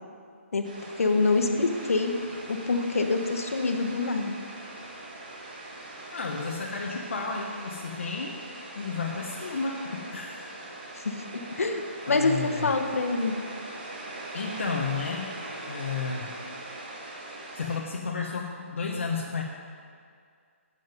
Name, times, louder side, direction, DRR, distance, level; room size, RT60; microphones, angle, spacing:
sound 1, 0.6-17.8, right 2 dB, 35° right, 1.7 m, -41 dB
voice 1, 1.0-2.1 2.5-4.4 10.9-13.3, left 3 dB, 90° left, 4 dB, 1.3 m, -26 dB
voice 2, 6.1-10.4 12.0-12.7 14.3-15.3 15.7-16.3 17.5-19.4, left 4 dB, 60° left, -1 dB, 1.0 m, -32 dB
11.5 x 7.7 x 5.3 m, 2.2 s
hypercardioid pair, 175°, 8 cm